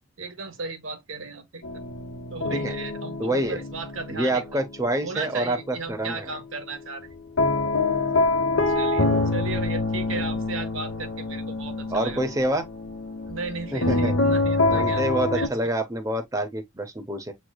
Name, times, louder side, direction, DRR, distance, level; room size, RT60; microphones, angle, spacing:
voice 1, 0.2-1.8 2.3-4.6 5.0-7.1 8.7-9.1 9.3-12.2 13.3-15.5, right 3 dB, 80° right, 1.2 m, -35 dB
sound 1, 1.6-5.7 6.0-15.5, left 2 dB, 75° left, 1.0 m, -26 dB
voice 2, 3.2-3.6 4.1-6.3 10.1-10.2 11.9-12.6 13.7-14.1 14.7-17.3, right 1 dB, 15° right, 0.7 m, -27 dB
7.4 x 3.1 x 2.3 m
head